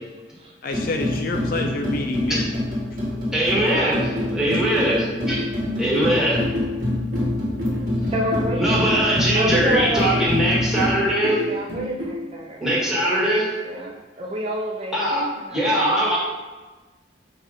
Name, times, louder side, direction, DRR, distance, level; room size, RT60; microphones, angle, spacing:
voice 1, 0.6-2.5, left 2 dB, 55° left, 3 dB, 0.4 m, -27 dB
sound 1, 0.7-10.9, left 1 dB, 50° right, 1.4 m, -26 dB
voice 2, 3.3-5.4 5.8-6.4 8.6-11.4 12.6-13.5 14.9-15.2 15.5-16.2, right 1 dB, 5° right, -7 dB, 1.2 m, -21 dB
sound 2, 4.0-12.2, left 1 dB, 80° right, 1.0 m, -31 dB
voice 3, 8.1-8.8 9.3-10.5 11.4-12.8 13.6-15.7, right 1 dB, 35° right, -1 dB, 0.5 m, -28 dB
4.1 x 2.6 x 4.7 m, 1.2 s
head